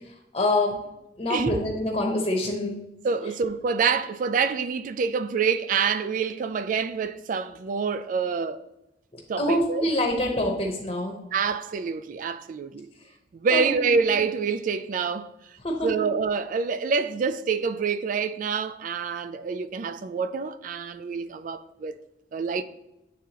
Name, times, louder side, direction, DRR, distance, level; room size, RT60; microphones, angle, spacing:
voice 1, 0.3-0.7 1.2-2.8 9.4-11.2 13.5-14.1 15.6-15.9, left 1 dB, 35° left, 0.8 m, -25 dB
voice 2, 3.0-8.6 9.3-9.9 11.3-12.9 13.3-15.3 15.8-22.0 22.3-22.6, right 5 dB, 50° right, 0.3 m, -26 dB
9.1 x 3.6 x 2.9 m
head